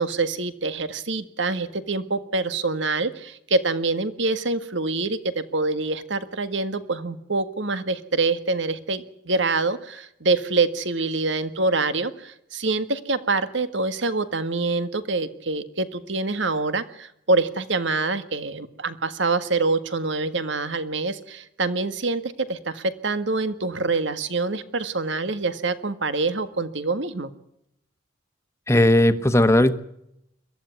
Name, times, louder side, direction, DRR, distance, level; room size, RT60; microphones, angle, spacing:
voice 1, 0.0-27.3, right 3 dB, 70° right, 12 dB, 1.8 m, -25 dB
voice 2, 28.7-29.7, left 1 dB, 15° left, 11 dB, 1.3 m, -17 dB
22.5 x 15.0 x 9.5 m, 0.78 s
head